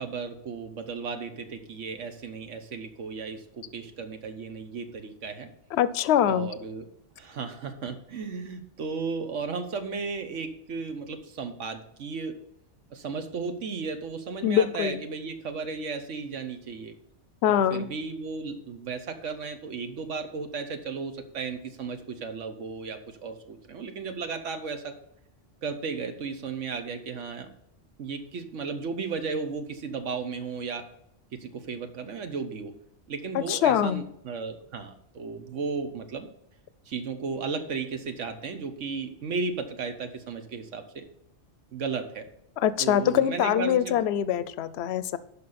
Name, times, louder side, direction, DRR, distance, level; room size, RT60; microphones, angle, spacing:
voice 1, 0.0-5.5 6.3-6.8 7.2-12.4 12.9-16.9 17.5-24.9 25.6-27.5 28.0-30.9 31.3-32.7 33.1-36.3 36.9-41.0 41.7-42.3 42.8-44.0, right 5 dB, 80° right, 8 dB, 1.3 m, -34 dB
voice 2, 5.7-6.5 14.4-15.0 17.4-17.9 33.3-34.0 42.6-45.2, left 10 dB, 70° left, 16 dB, 0.8 m, -24 dB
11.5 x 5.2 x 4.1 m, 0.76 s
omnidirectional pair, 1.3 m